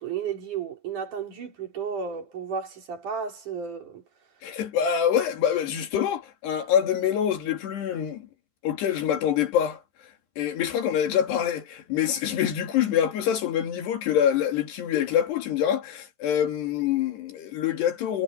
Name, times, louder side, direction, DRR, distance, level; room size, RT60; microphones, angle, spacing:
voice 1, 0.0-4.0, right 6 dB, 45° right, 5.4 m, -33 dB
voice 2, 4.4-8.3 8.6-9.8 10.4-18.2, left 9 dB, 65° left, 4.3 m, -25 dB
omnidirectional pair, 5.4 m